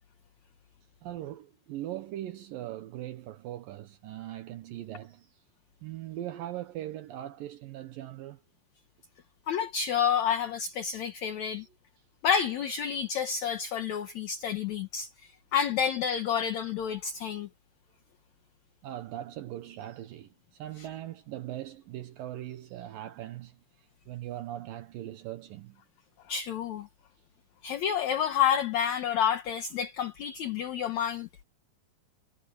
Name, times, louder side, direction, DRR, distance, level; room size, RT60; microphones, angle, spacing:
voice 1, 1.0-5.3 5.8-8.4 18.8-23.6 24.1-25.8, right 13 dB, 75° right, 2.6 m, -40 dB
voice 2, 9.5-11.7 12.2-17.5 20.8-20.9 26.3-26.9 27.6-31.4, left 8 dB, 65° left, 2.0 m, -29 dB
omnidirectional pair, 4.4 m